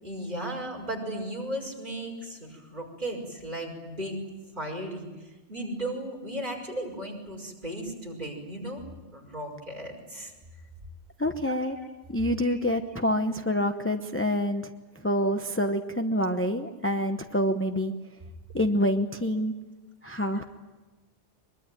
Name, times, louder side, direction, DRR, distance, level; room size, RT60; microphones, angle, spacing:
voice 1, 0.0-4.2 4.6-5.1 5.5-8.9 9.1-10.3 11.5-11.9 12.5-12.6, right 1 dB, 40° right, 0 dB, 5.4 m, -36 dB
voice 2, 11.2-11.8 12.1-14.7 15.0-17.9 18.5-19.5 20.0-20.4, equal, 10° left, 5 dB, 0.9 m, -27 dB
23.5 x 22.5 x 9.1 m, 1.2 s
omnidirectional pair, 1.2 m